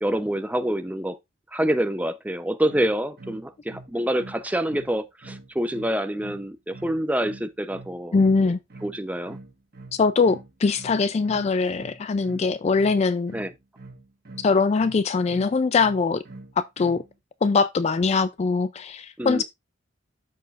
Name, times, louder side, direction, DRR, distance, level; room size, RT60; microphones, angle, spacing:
voice 1, 0.0-1.2 1.5-8.5 8.8-9.4 13.3-13.5 19.2-19.4, right 1 dB, 10° right, 0.6 m, -27 dB
sound 1, 2.7-17.1, right 2 dB, 50° right, 1.4 m, -44 dB
voice 2, 8.1-8.6 10.0-13.3 14.4-16.2 16.6-17.0 17.4-19.4, left 4 dB, 35° left, 0.3 m, -22 dB
13.0 x 4.6 x 2.4 m
head